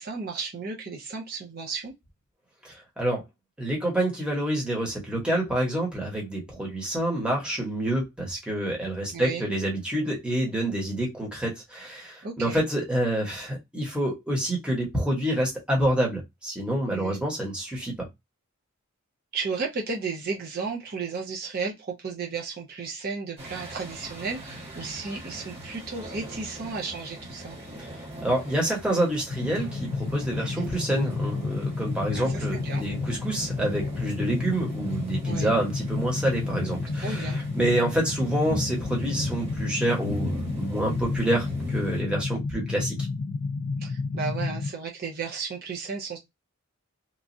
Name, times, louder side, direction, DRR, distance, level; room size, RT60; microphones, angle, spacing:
voice 1, 0.0-1.9 9.1-9.4 12.2-12.6 16.9-17.2 19.3-27.6 30.4-30.7 32.1-32.8 35.2-35.5 37.0-37.4 43.8-46.2, right 4 dB, 45° right, 0.5 m, -34 dB
voice 2, 2.6-3.2 3.6-18.1 28.2-43.0, right 1 dB, 5° right, 1.0 m, -27 dB
sound 1, 23.4-42.0, equal, 30° right, 1.3 m, -39 dB
sound 2, 29.3-44.7, left 4 dB, 65° left, 0.4 m, -31 dB
3.0 x 2.4 x 2.5 m
head